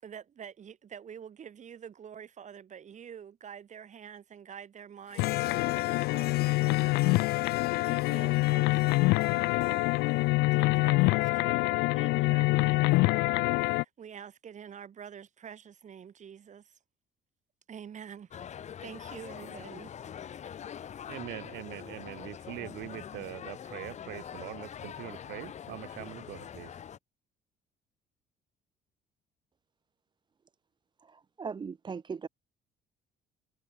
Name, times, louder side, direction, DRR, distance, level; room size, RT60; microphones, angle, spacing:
voice 1, 0.0-16.8 17.7-18.3 18.8-19.9, right 8 dB, 45° right, 7.6 m, -47 dB
Harp, 5.1-10.8, left 13 dB, 65° left, 2.5 m, -44 dB
sound 1, 5.2-13.8, left 23 dB, 90° left, 0.4 m, -26 dB
sound 2, 18.3-27.0, left 9 dB, 45° left, 1.1 m, -44 dB
voice 2, 21.1-26.7, right 17 dB, 80° right, 1.4 m, -43 dB
voice 3, 31.1-32.3, right 5 dB, 25° right, 0.8 m, -39 dB
cardioid pair, 110°, 17 cm